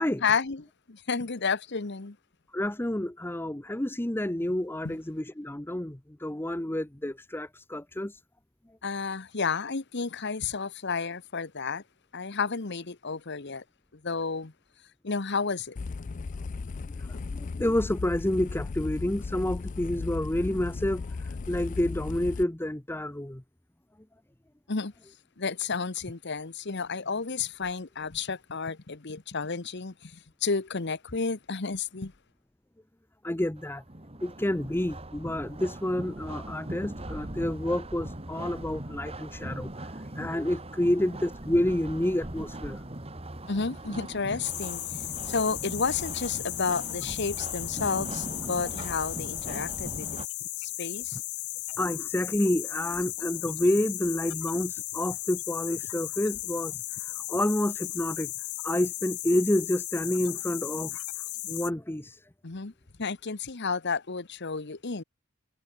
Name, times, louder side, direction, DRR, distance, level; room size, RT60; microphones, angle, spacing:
voice 1, 0.2-2.2 4.8-5.0 8.8-11.8 12.1-13.6 14.0-14.5 15.0-15.8 24.7-24.9 25.4-32.1 43.5-44.8 45.3-50.1 50.6-51.2 62.4-62.7 63.0-65.0, left 5 dB, 50° left, 1.1 m, -31 dB
voice 2, 2.5-8.2 17.3-21.0 21.5-23.4 33.2-33.8 34.2-39.7 40.2-42.8 51.8-56.8 57.3-58.3 58.6-61.0 61.5-62.2, left 1 dB, 10° left, 0.8 m, -29 dB
sound 1, 15.8-22.4, left 4 dB, 35° left, 0.4 m, -36 dB
sound 2, 33.6-50.3, right 1 dB, 25° right, 2.4 m, -40 dB
sound 3, 44.4-61.7, left 19 dB, 85° left, 0.7 m, -36 dB
head